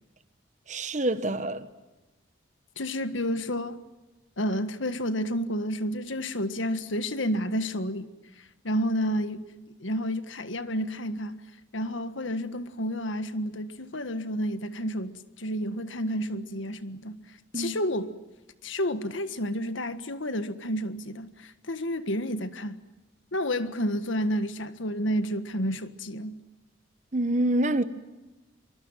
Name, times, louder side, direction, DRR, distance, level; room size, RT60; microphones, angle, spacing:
voice 1, 0.7-1.7 17.5-17.8 27.1-27.8, right 1 dB, 35° right, 1.3 m, -26 dB
voice 2, 2.8-3.8 4.4-9.5 9.8-11.4 11.7-18.1 18.6-22.7 23.3-26.3, equal, 80° left, 1.7 m, -30 dB
25.0 x 24.0 x 9.1 m
head